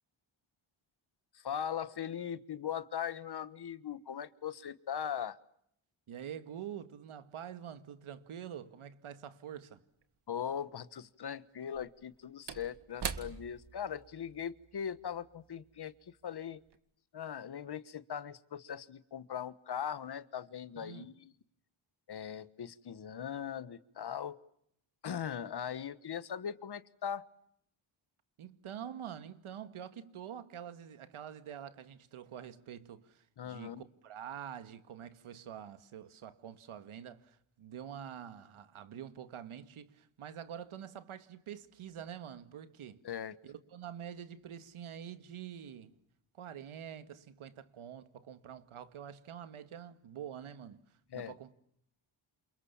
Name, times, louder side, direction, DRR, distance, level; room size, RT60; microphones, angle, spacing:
voice 1, 1.3-5.4 10.3-15.9 16.2-16.6 17.1-21.3 22.1-24.4 25.0-27.3 33.4-33.8 43.0-43.4 51.1-51.3, left 8 dB, 50° left, 1.4 m, -40 dB
voice 2, 6.1-9.8 20.8-21.1 28.4-43.0 43.4-45.9 46.4-50.8 51.1-51.5, right 9 dB, 80° right, 2.2 m, -46 dB
Slam / Wood, 10.0-10.1 11.6-16.3 16.6-16.8, right 6 dB, 55° right, 2.1 m, -45 dB
29.0 x 28.0 x 7.2 m
cardioid pair, 115°, 49 cm